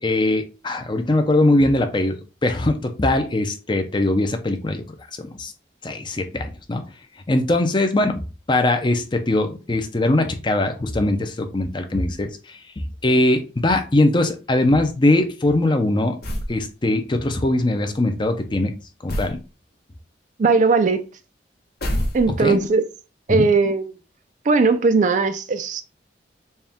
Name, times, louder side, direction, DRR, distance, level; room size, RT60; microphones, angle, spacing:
voice 1, 0.0-2.2 2.4-4.8 5.2-5.5 5.8-6.8 7.3-8.2 8.5-16.2 16.5-18.7 19.0-19.4 22.4-22.6 23.3-23.5, left 2 dB, 25° left, 0.5 m, -21 dB
sound 1, 16.2-16.6 19.1-19.4 21.8-22.6, equal, 60° left, 1.0 m, -26 dB
voice 2, 20.4-21.0 22.1-22.8 23.3-23.9 24.5-25.8, right 4 dB, 45° right, 0.4 m, -18 dB
4.2 x 2.3 x 3.5 m
head